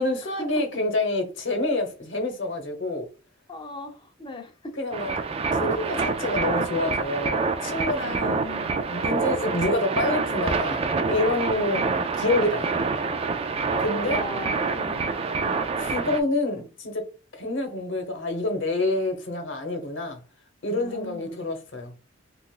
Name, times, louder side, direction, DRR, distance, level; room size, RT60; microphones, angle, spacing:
voice 1, 0.0-3.1 4.8-5.2 5.5-8.4 8.9-11.8 12.2-12.8 13.8-14.2 15.8-20.2 20.6-21.9, left 2 dB, 65° left, 1.0 m, -27 dB
voice 2, 3.5-4.7 8.0-8.9 11.6-12.1 14.0-15.7 20.8-21.5, left 1 dB, 25° left, 0.6 m, -39 dB
sound 1, 4.9-16.2, right 4 dB, 30° right, 0.3 m, -27 dB
3.8 x 2.4 x 2.4 m
head